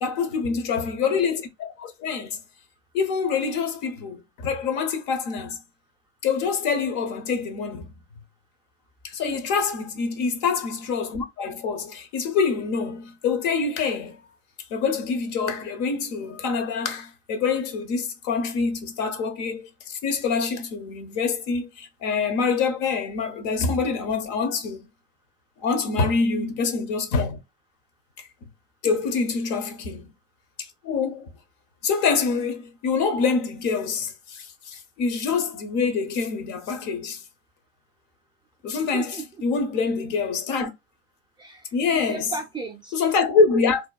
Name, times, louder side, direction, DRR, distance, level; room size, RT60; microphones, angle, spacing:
voice 1, 0.0-2.4 2.9-5.6 6.2-7.9 9.0-14.2 14.7-24.8 25.6-27.4 28.8-30.1 30.6-31.3 31.8-37.2 38.6-40.7 41.7-42.2 42.9-43.8, left 5 dB, 50° left, 0.9 m, -25 dB
voice 2, 38.9-39.3 41.4-43.0, right 4 dB, 10° right, 0.5 m, -36 dB
2.9 x 2.2 x 2.2 m
hypercardioid pair, 95°, 38 cm